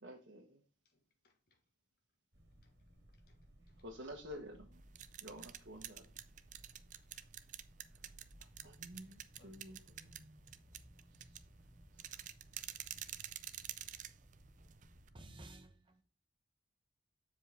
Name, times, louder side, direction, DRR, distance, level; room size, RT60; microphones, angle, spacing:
voice 1, 0.0-0.6 3.8-4.9 5.2-6.1 8.0-10.2 11.1-11.4 11.9-12.2, equal, 80° right, 1.4 m, -52 dB
voice 2, 0.8-1.6 2.6-2.7 3.1-3.4 3.7-3.8 6.9-7.3 8.6-9.6 10.4-10.6 10.9-11.0, left 2 dB, 55° left, 1.6 m, -74 dB
sound 1, 2.3-15.5, equal, 60° right, 2.2 m, -62 dB
sound 2, 4.7-15.1, right 11 dB, 40° right, 0.4 m, -49 dB
voice 3, 15.1-16.0, right 1 dB, 25° right, 1.0 m, -54 dB
7.4 x 5.0 x 4.4 m
head